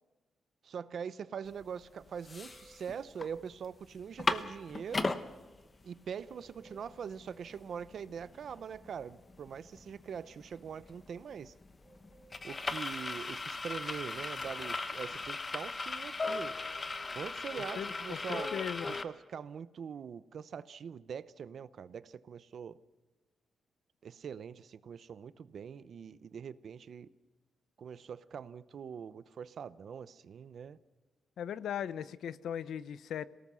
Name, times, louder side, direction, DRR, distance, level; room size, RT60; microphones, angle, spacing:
voice 1, 0.6-5.1 5.8-11.5 12.4-16.6 17.1-22.7 24.0-27.1 27.8-30.8, right 7 dB, 50° right, 0.7 m, -43 dB
sound 1, 1.6-1.7 2.1-3.3 3.6-3.7 4.0-5.2 5.8-5.9 6.2-19.0, left 3 dB, 25° left, 0.9 m, -38 dB
sound 2, 2.1-3.6 6.2-7.6 11.8-13.2 17.8-19.1, right 3 dB, 20° right, 7.1 m, -63 dB
voice 2, 17.8-18.9 31.4-33.3, left 9 dB, 80° left, 0.8 m, -38 dB
27.0 x 18.0 x 6.2 m
wide cardioid pair, 180°, 0 cm